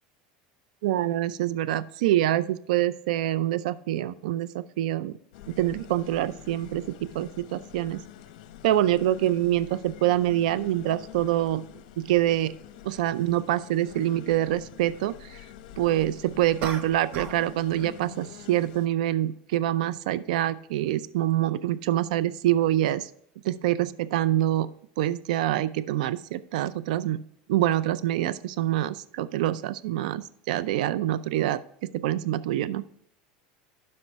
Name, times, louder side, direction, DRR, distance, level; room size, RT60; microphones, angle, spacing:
voice 1, 0.8-5.1 5.6-6.8 7.1-8.0 8.6-11.6 12.0-12.5 12.8-15.4 15.8-23.1 23.4-24.7 25.0-27.2 27.5-31.6 31.9-32.9, right 13 dB, 85° right, 16 dB, 0.4 m, -25 dB
sound 1, 5.3-18.9, left 11 dB, 80° left, 0.8 m, -46 dB
sound 2, 12.7-12.8 16.6-17.5 17.8-18.1, right 6 dB, 50° right, 1.1 m, -37 dB
12.0 x 5.4 x 3.5 m, 0.70 s
supercardioid pair, 125°, 4 cm